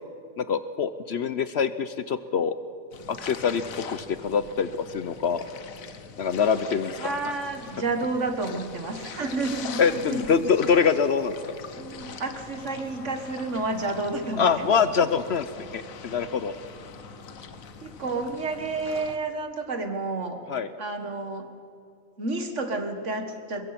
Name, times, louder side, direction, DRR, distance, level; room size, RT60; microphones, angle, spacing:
voice 1, 0.4-2.5 3.1-3.6 3.9-5.4 6.2-6.9 9.8-11.4 14.4-16.5 20.5-20.7, left 6 dB, 60° left, 13 dB, 0.9 m, -24 dB
sound 1, 2.9-19.2, left 6 dB, 80° left, 1.5 m, -42 dB
voice 2, 7.0-10.2 11.8-14.7 17.8-20.4 20.8-21.5 22.2-23.7, right 3 dB, 60° right, 7 dB, 2.0 m, -30 dB
22.5 x 22.5 x 5.9 m, 2.6 s
omnidirectional pair, 1.4 m